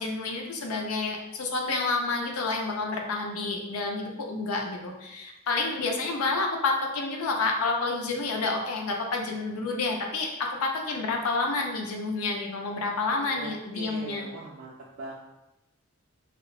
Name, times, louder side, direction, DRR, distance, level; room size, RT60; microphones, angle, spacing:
voice 1, 0.0-14.3, left 3 dB, 90° left, 2 dB, 0.5 m, -29 dB
voice 2, 13.3-15.1, right 3 dB, 80° right, -4 dB, 0.4 m, -41 dB
2.9 x 2.0 x 2.3 m, 0.92 s
head